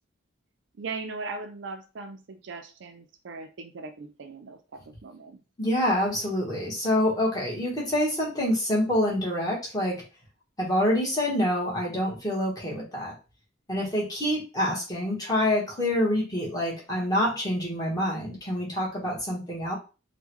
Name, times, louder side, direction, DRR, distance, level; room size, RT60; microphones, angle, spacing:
voice 1, 0.8-5.4 13.8-13.9, right 3 dB, 60° right, 6 dB, 0.4 m, -39 dB
voice 2, 5.6-10.0 10.6-13.1 13.7-19.7, left 1 dB, 20° left, -4 dB, 1.2 m, -26 dB
3.6 x 2.2 x 3.0 m, 0.32 s
head